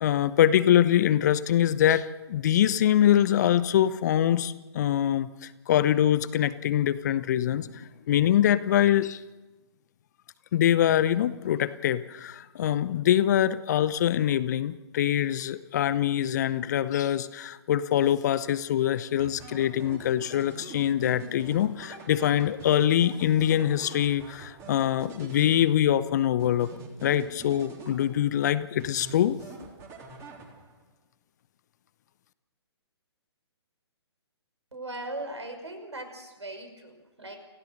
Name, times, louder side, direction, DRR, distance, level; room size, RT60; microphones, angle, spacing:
voice 1, 0.0-9.2 10.5-26.7 27.0-29.4, left 11 dB, 40° left, 15 dB, 0.9 m, -24 dB
sound 1, 19.2-26.0 26.4-28.4 28.8-30.8, right 3 dB, 20° right, 3.5 m, -45 dB
voice 2, 34.7-37.4, right 2 dB, 75° right, 6 dB, 5.5 m, -39 dB
28.5 x 15.5 x 6.7 m, 1.1 s
figure-of-eight pair, 130°, 15 cm